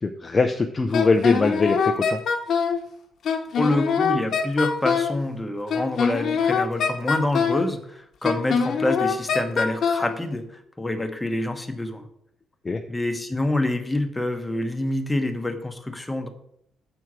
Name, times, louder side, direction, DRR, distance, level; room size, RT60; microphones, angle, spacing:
voice 1, 0.0-2.2 12.6-12.8, left 3 dB, 30° left, 6 dB, 0.6 m, -22 dB
Wind instrument woodwind instrument, 0.9-2.8 3.3-5.2 5.7-7.7 8.2-10.1, left 6 dB, 60° left, 1.1 m, -23 dB
voice 2, 3.6-12.1 12.9-16.3, left 1 dB, 10° left, 6 dB, 1.1 m, -26 dB
7.2 x 4.5 x 6.2 m, 0.71 s
cardioid pair, 90°, 0 cm